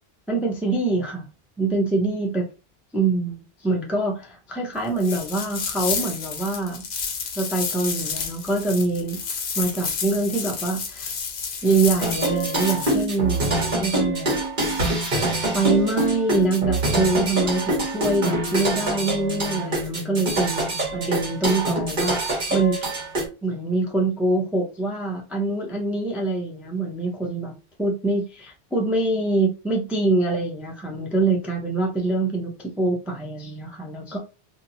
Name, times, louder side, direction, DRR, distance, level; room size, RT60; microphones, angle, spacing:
voice 1, 0.3-1.2 1.6-2.5 2.9-6.8 7.4-9.2 9.6-11.1 11.6-13.5 13.8-14.4 15.5-22.8 23.4-32.5 32.8-34.2, right 3 dB, ahead, 0.4 m, -24 dB
sound 1, 5.0-13.1, left 6 dB, 60° left, 0.7 m, -30 dB
sound 2, 12.0-23.3, right 2 dB, 55° right, 1.3 m, -25 dB
2.8 x 2.5 x 2.6 m
omnidirectional pair, 1.0 m